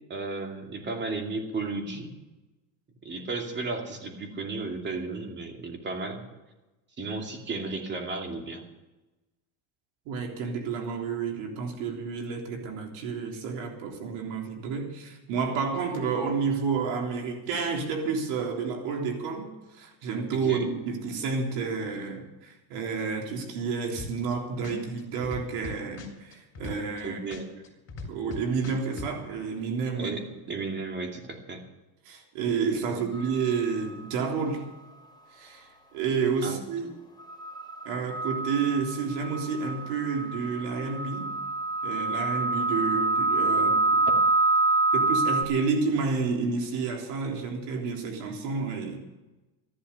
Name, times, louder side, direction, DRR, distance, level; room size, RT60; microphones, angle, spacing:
voice 1, 0.1-2.1 3.0-6.2 7.0-8.6 20.3-20.7 27.0-27.5 29.9-31.6 32.9-33.0 36.4-36.6, right 3 dB, 25° right, 3 dB, 2.6 m, -34 dB
voice 2, 10.1-27.2 28.0-30.1 30.5-30.6 32.1-34.6 35.3-36.9 37.9-41.3 41.8-44.0 44.9-49.0, right 5 dB, 75° right, 2 dB, 3.6 m, -30 dB
sound 1, 24.0-24.3 24.6-27.0 27.3-29.1, left 4 dB, 30° left, 3.2 m, -38 dB
sound 2, 33.1-33.5 37.2-45.4, right 3 dB, 10° left, 2.5 m, -26 dB
14.0 x 11.5 x 7.0 m, 1.1 s
cardioid pair, 130°, 41 cm